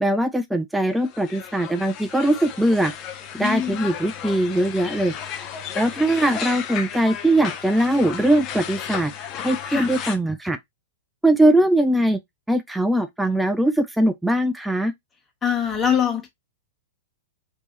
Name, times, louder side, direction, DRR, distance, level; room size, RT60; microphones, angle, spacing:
voice 1, 0.0-2.9 3.3-5.1 5.8-9.1 9.4-10.6 11.2-12.2 12.5-14.9, right 1 dB, 5° right, 0.4 m, -21 dB
sound 1, 0.9-10.2, left 8 dB, 35° left, 0.8 m, -34 dB
voice 2, 3.4-3.8 9.7-9.9 15.4-16.3, left 8 dB, 20° left, 1.3 m, -23 dB
3.5 x 3.0 x 2.6 m
hypercardioid pair, 110°, 0 cm